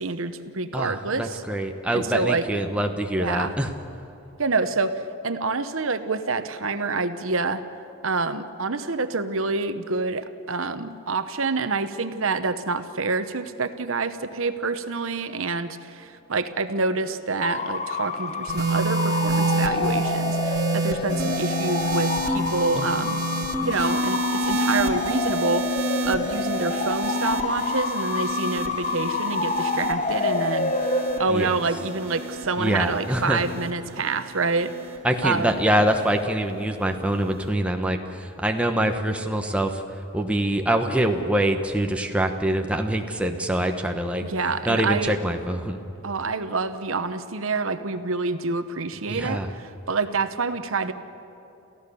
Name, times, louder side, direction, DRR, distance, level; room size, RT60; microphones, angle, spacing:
voice 1, 0.0-1.4 1.9-2.5 3.2-3.6 4.4-7.6 8.0-23.2 23.6-25.7 26.0-30.7 31.2-35.6 44.2-45.2 46.0-50.9, right 3 dB, 70° right, 10 dB, 1.0 m, -27 dB
voice 2, 0.7-3.7 22.8-23.1 31.3-31.5 32.6-33.4 35.0-44.2 44.6-45.8 49.1-49.5, right 1 dB, 5° right, 3 dB, 1.1 m, -25 dB
Bark / Motor vehicle (road) / Siren, 17.4-33.7, left 3 dB, 30° left, 0.8 m, -28 dB
sound 1, 18.5-35.0 35.9-36.2, right 2 dB, 50° right, 2.3 m, -28 dB
29.0 x 15.0 x 7.0 m, 3.0 s
head